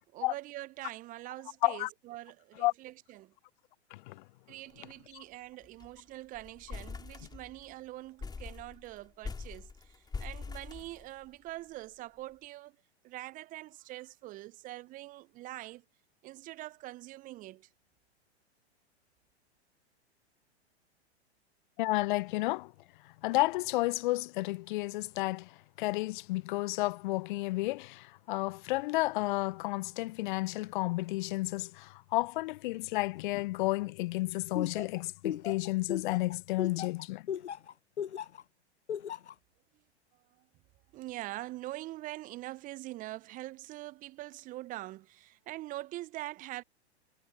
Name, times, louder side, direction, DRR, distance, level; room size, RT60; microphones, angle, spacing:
voice 1, 0.1-3.3 4.5-12.8 13.0-15.8 16.2-17.7 40.1-40.5 40.9-46.6, right 17 dB, 25° right, 0.6 m, -44 dB
voice 2, 3.9-4.2 5.1-5.2 21.8-22.7 23.0-37.3, left 20 dB, 45° left, 0.7 m, -32 dB
sound 1, 4.7-4.9 5.2-5.3 5.6-6.0 6.3-7.7 8.2-11.5, left 4 dB, 10° left, 3.7 m, -43 dB
Laughter, 34.5-38.4 38.9-39.3, left 9 dB, 80° left, 0.9 m, -36 dB
figure-of-eight pair, 100°, 34 cm